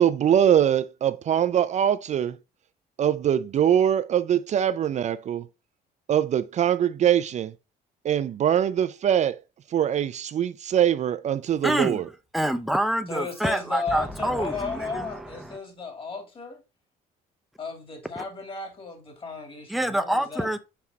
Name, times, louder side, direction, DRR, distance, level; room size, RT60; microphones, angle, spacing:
voice 1, 0.0-2.4 3.0-5.5 6.1-7.5 8.0-9.4 9.7-12.0, right 9 dB, 45° right, 0.4 m, -22 dB
voice 2, 11.6-12.0 12.3-15.6 18.2-18.3 19.7-20.6, right 1 dB, ahead, 0.7 m, -27 dB
voice 3, 13.1-16.6 17.6-20.6, left 4 dB, 30° left, 2.8 m, -35 dB
5.8 x 4.8 x 4.2 m
cardioid pair, 110°, 17 cm